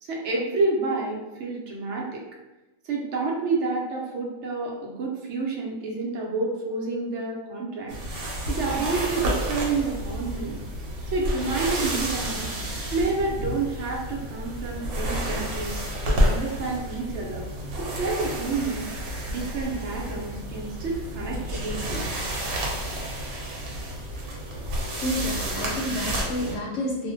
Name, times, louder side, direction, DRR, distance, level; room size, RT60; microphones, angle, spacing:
voice 1, 0.0-2.2 2.9-7.9 8.5-10.6 11.1-12.5 12.9-15.8 16.0-17.4 17.8-18.9 19.3-22.0, right 3 dB, 65° right, -2 dB, 0.7 m, -29 dB
sound 1, 7.9-26.6, equal, 80° right, 1.0 m, -30 dB
voice 2, 24.8-27.1, left 1 dB, 70° left, -3 dB, 0.8 m, -30 dB
2.4 x 2.1 x 2.5 m, 1.0 s
omnidirectional pair, 1.5 m